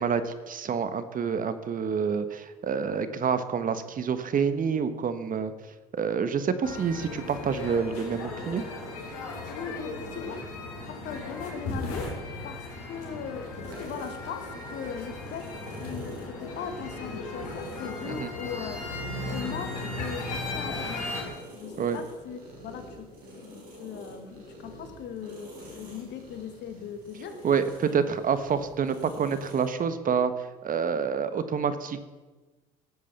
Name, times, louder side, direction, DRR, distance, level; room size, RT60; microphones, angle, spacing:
voice 1, 0.0-5.5 5.9-8.7 18.1-18.3 21.8-22.0 27.4-30.3 30.6-32.0, right 6 dB, 45° right, 11 dB, 1.3 m, -27 dB
sound 1, 6.6-21.2, left 2 dB, 85° left, 3.7 m, -36 dB
voice 2, 9.5-10.4 10.9-12.1 12.4-18.8 19.2-21.2 21.5-27.5, left 7 dB, 65° left, 8 dB, 1.7 m, -39 dB
sound 2, 13.6-29.7, equal, 80° right, 5.6 m, -47 dB
17.0 x 8.3 x 7.1 m, 1.2 s
hypercardioid pair, 60°, 20 cm